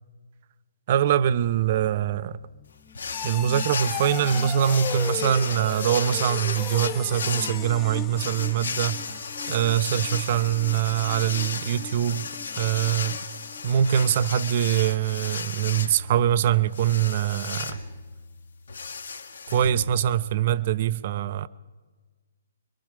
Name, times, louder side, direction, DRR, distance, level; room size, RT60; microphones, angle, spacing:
voice 1, 0.9-2.4 3.2-9.0 9.5-12.3 12.6-13.2 13.6-17.8 19.5-21.5, right 10 dB, 35° right, 0.6 m, -23 dB
sound 1, 1.5-14.2 14.5-14.9 15.3-15.4, left 10 dB, 20° left, 0.8 m, -38 dB
sound 2, 2.9-20.3, left 5 dB, 60° left, 1.8 m, -34 dB
24.5 x 23.0 x 5.0 m
figure-of-eight pair, 130°, 0 cm